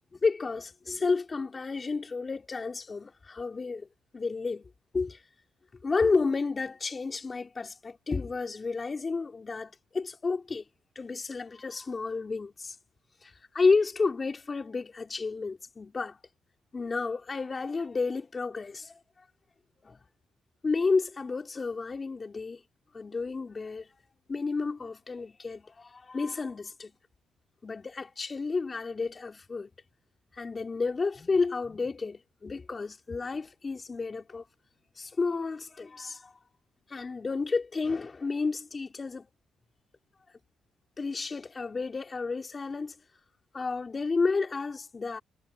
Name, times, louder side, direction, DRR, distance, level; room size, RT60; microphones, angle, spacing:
voice 1, 0.1-3.9 4.1-5.2 5.8-10.6 11.0-12.7 13.2-16.2 16.7-19.0 19.8-20.0 20.6-22.6 22.9-23.9 24.3-26.9 27.6-29.7 30.3-34.4 35.0-36.3 36.9-39.3 41.0-43.0 43.5-45.2, left 4 dB, 30° left, 4.3 m, -31 dB
cardioid pair, 90°, 0 cm